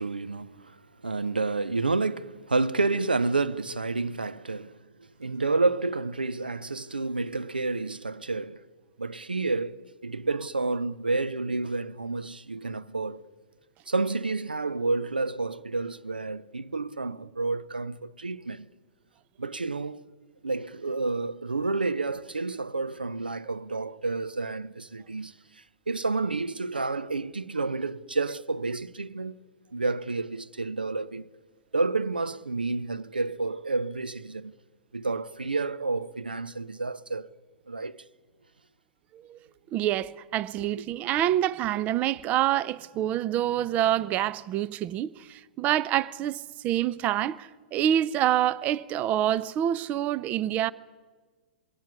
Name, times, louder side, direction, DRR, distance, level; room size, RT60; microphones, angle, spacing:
voice 1, 0.0-4.8 5.2-8.6 9.0-13.2 13.9-18.7 19.4-20.0 20.4-29.4 29.7-31.3 31.7-34.5 34.9-37.3 37.7-38.0 40.8-40.9, right 3 dB, 85° right, 0.7 m, -30 dB
voice 2, 39.7-50.7, right 12 dB, 30° right, 0.6 m, -27 dB
22.5 x 17.5 x 9.7 m
figure-of-eight pair, 105°, 5 cm